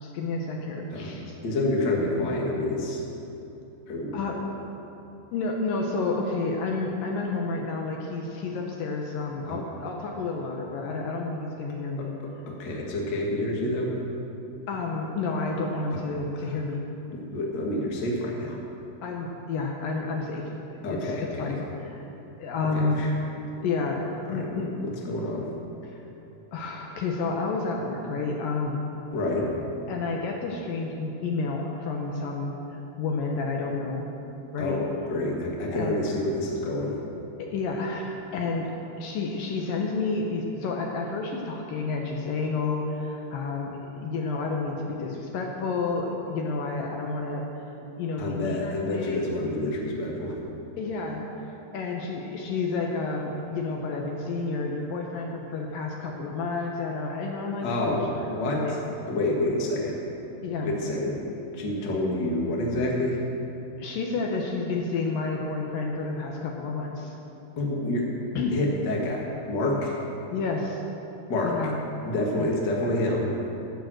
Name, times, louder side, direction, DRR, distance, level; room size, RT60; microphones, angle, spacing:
voice 1, 0.0-1.4 4.1-4.4 5.3-12.1 14.7-16.8 19.0-21.1 21.4-22.1 22.4-23.0 23.6-24.7 25.9-26.0 26.5-28.8 29.9-34.1 34.5-34.8 35.7-36.0 37.4-38.7 39.0-47.5 48.0-49.2 50.8-51.2 51.7-58.7 60.4-60.7 63.8-67.1 68.4-68.6 70.3-70.8 71.4-71.8 72.4-72.5, left 3 dB, 75° left, 1 dB, 2.1 m, -30 dB
voice 2, 1.4-3.0 3.9-4.1 9.5-9.6 12.0-12.1 12.5-13.9 15.9-16.0 16.4-16.5 17.1-18.6 20.8-21.6 22.6-23.1 24.3-25.5 29.1-29.5 34.6-37.0 48.2-50.4 57.6-58.8 59.1-60.0 60.6-61.2 61.5-63.2 67.6-68.1 68.5-70.0 71.3-71.6 72.0-73.3, left 1 dB, 55° left, -2 dB, 1.1 m, -28 dB
12.0 x 7.2 x 7.7 m, 2.9 s
omnidirectional pair, 5.1 m